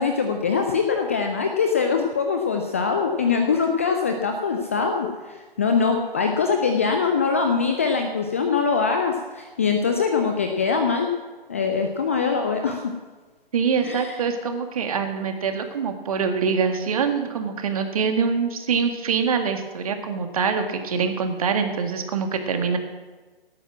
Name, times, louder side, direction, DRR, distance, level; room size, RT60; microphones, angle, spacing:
voice 1, 0.0-11.1 11.5-12.9 13.8-14.2, left 5 dB, 15° left, 4 dB, 0.5 m, -23 dB
voice 2, 13.5-22.8, right 6 dB, 35° right, 6 dB, 2.0 m, -24 dB
17.5 x 9.1 x 7.4 m, 1.3 s
figure-of-eight pair, 140°, 30 cm